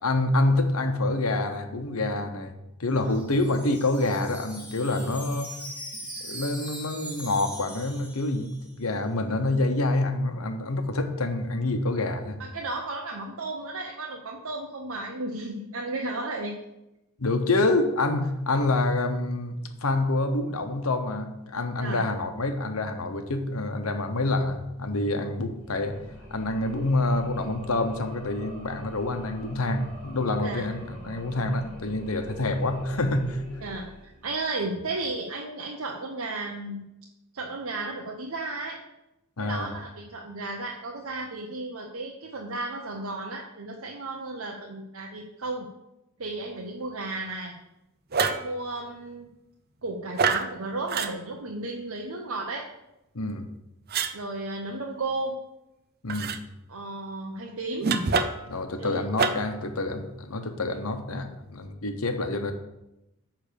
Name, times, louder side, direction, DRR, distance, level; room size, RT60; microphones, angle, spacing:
voice 1, 0.0-2.5 2.8-5.6 6.2-12.4 17.2-26.0 26.3-33.4 39.4-39.7 53.1-53.4 56.0-56.4 58.4-62.5, left 2 dB, 75° left, 7 dB, 1.0 m, -27 dB
Wind chime, 2.8-8.8, equal, 5° right, 1.9 m, -41 dB
voice 2, 12.4-16.5 21.8-22.0 30.4-30.7 33.6-36.8 37.3-38.8 39.4-45.7 46.2-47.6 48.4-49.3 49.8-52.7 54.1-55.4 56.7-57.9 58.8-59.0, right 2 dB, 70° right, -1 dB, 0.9 m, -34 dB
sound 1, 25.5-34.6, equal, 25° right, 2.6 m, -45 dB
sound 2, 48.1-48.5 50.2-50.5 50.9-51.1 53.9-54.1 56.1-56.4 57.8-58.5 59.2-59.6, right 4 dB, 45° right, 0.6 m, -25 dB
9.6 x 3.4 x 6.8 m, 0.91 s
head